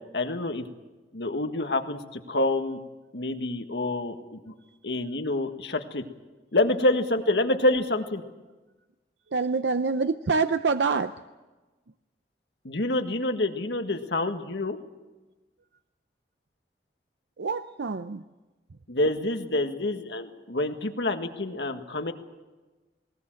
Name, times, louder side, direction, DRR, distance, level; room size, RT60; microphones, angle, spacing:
voice 1, 0.1-0.6 1.1-2.8 3.1-4.5 4.8-6.0 6.5-8.2 12.6-14.8 18.9-22.1, left 2 dB, 80° left, 6 dB, 1.7 m, -27 dB
voice 2, 9.3-11.1 17.4-18.2, right 4 dB, 85° right, 10 dB, 0.6 m, -26 dB
20.0 x 19.5 x 7.7 m, 1.2 s
head